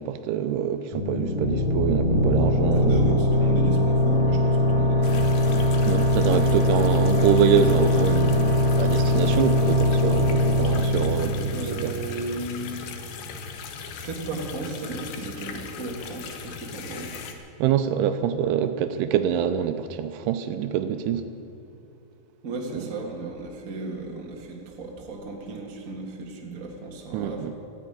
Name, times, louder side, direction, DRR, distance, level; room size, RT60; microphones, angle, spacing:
voice 1, 0.0-3.0 5.8-11.9 17.6-21.3 22.7-22.8 27.1-27.5, right 9 dB, 80° right, 9 dB, 2.6 m, -25 dB
sound 1, 0.9-12.3, left 1 dB, 35° left, 0.8 m, -21 dB
voice 2, 2.7-5.5 11.5-12.8 14.0-17.2 22.4-27.5, right 2 dB, 40° right, -1 dB, 1.2 m, -35 dB
sound 2, 5.0-17.3, left 5 dB, 75° left, 2.9 m, -39 dB
15.0 x 9.7 x 9.0 m, 2.6 s
omnidirectional pair, 4.8 m